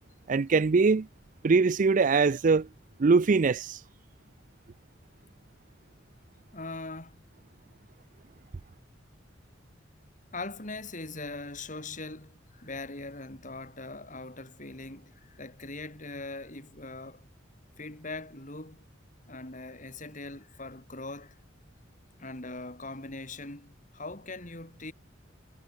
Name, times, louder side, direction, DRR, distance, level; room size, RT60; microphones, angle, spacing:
voice 1, 0.3-1.1 1.4-2.7 3.0-3.8, right 4 dB, 40° right, 0.4 m, -22 dB
voice 2, 6.5-7.2 10.3-17.2 17.8-18.9 19.3-21.4 22.2-24.9, left 2 dB, 40° left, 4.3 m, -41 dB
head